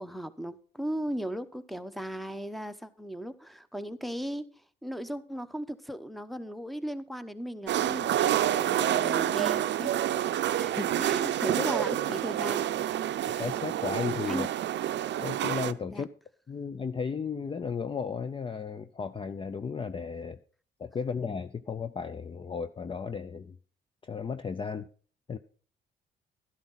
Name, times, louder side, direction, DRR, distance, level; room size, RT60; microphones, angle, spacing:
voice 1, 0.0-4.4 4.8-9.9 10.5-12.7 14.3-14.5 15.9-16.0, equal, ahead, 13 dB, 0.9 m, -36 dB
sound 1, 7.7-15.7, right 11 dB, 65° right, 0.6 m, -28 dB
voice 2, 13.4-14.5 15.2-16.1 16.5-20.4 20.8-23.6 24.0-24.9 25.3-25.4, left 5 dB, 25° left, 12 dB, 0.5 m, -34 dB
12.0 x 11.0 x 4.0 m, 0.42 s
cardioid pair, 90°, 20 cm